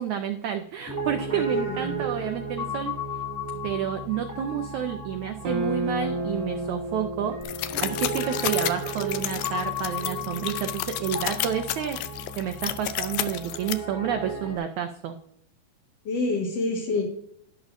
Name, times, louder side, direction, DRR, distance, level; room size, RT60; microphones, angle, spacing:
voice 1, 0.0-2.9 3.6-7.4 7.8-12.0 12.4-15.2, right 9 dB, 85° right, 6 dB, 1.7 m, -30 dB
Piano, 0.9-14.6, right 1 dB, 5° right, 1.3 m, -34 dB
voice 2, 1.3-2.0 16.1-17.0, left 3 dB, 50° left, -3 dB, 2.4 m, -27 dB
sound 1, 5.4-9.8, right 2 dB, 65° right, 1.6 m, -33 dB
sound 2, 7.4-13.7, left 13 dB, 80° left, 2.0 m, -31 dB
12.5 x 10.5 x 2.6 m, 0.71 s
omnidirectional pair, 4.3 m